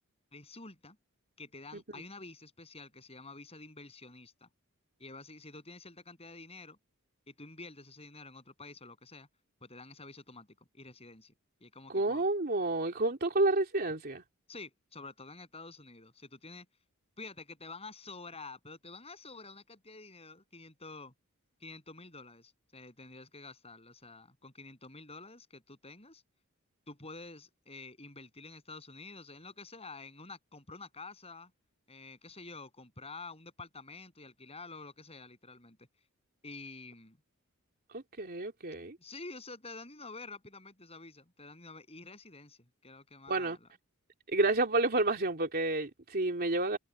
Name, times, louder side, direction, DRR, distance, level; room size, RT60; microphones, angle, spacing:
voice 1, 0.3-1.0 1.4-4.5 5.0-6.8 7.3-9.3 9.6-10.5 10.7-11.3 11.6-12.3 14.5-16.7 17.2-21.1 21.6-26.2 26.9-31.5 31.9-35.9 36.4-37.2 39.0-43.7, left 3 dB, 30° left, 7.8 m, -49 dB
voice 2, 11.9-14.2 37.9-39.0 43.3-43.6 44.3-46.8, right 2 dB, 45° right, 3.1 m, -30 dB
head